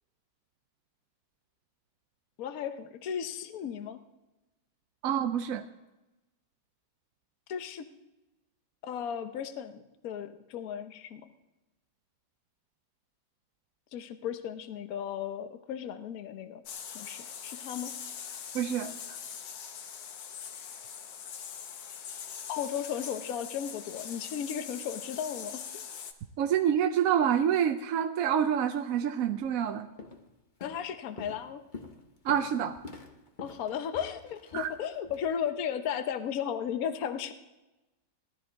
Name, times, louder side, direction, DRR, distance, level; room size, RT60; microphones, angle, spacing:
voice 1, 2.4-4.0 7.5-7.9 8.8-11.3 13.9-16.6 16.9-17.9 22.5-25.8 30.6-31.6 33.4-37.3, left 8 dB, 60° left, 9 dB, 1.2 m, -35 dB
voice 2, 5.0-5.6 18.5-19.2 26.4-29.9 32.2-32.8 34.5-34.7, right 9 dB, 65° right, 7 dB, 0.9 m, -27 dB
sound 1, 16.7-26.1, left 7 dB, 85° left, 1.6 m, -42 dB
Walk footsteps, 29.4-29.6 30.0-30.3 30.6-35.2, left 3 dB, 30° left, 1.1 m, -47 dB
17.5 x 12.5 x 4.0 m, 1.0 s
omnidirectional pair, 1.9 m